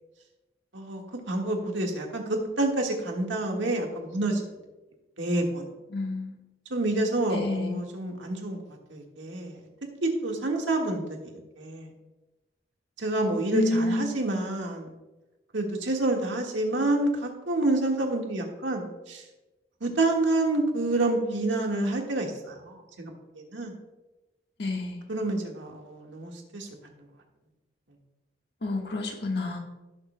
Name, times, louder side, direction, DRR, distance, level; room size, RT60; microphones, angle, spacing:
voice 1, 0.7-4.4 5.2-5.7 6.7-8.6 8.9-9.6 10.0-11.9 13.0-14.9 15.5-19.2 19.8-23.7 25.1-26.7, right 2 dB, 90° right, 1 dB, 1.6 m, -28 dB
voice 2, 5.9-6.4 7.3-7.8 13.5-14.2 24.6-25.0 28.6-29.6, left 2 dB, 65° left, 2 dB, 1.4 m, -29 dB
17.0 x 6.7 x 2.2 m, 1.1 s
head